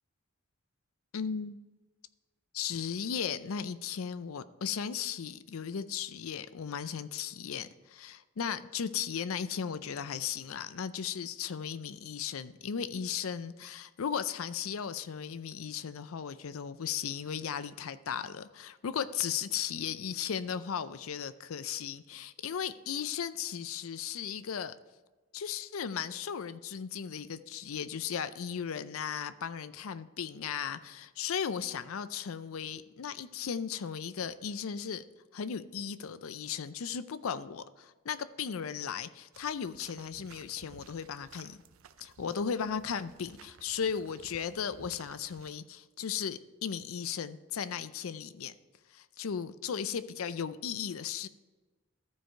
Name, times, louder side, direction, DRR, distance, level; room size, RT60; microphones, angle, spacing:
voice 1, 1.1-1.6 2.5-24.8 25.3-35.0 35.3-41.6 42.0-48.5 48.9-51.3, left 7 dB, 85° left, 14 dB, 0.5 m, -36 dB
sound 1, 39.3-45.6, right 6 dB, 80° right, 0.4 m, -56 dB
14.0 x 4.7 x 4.5 m, 1.2 s
head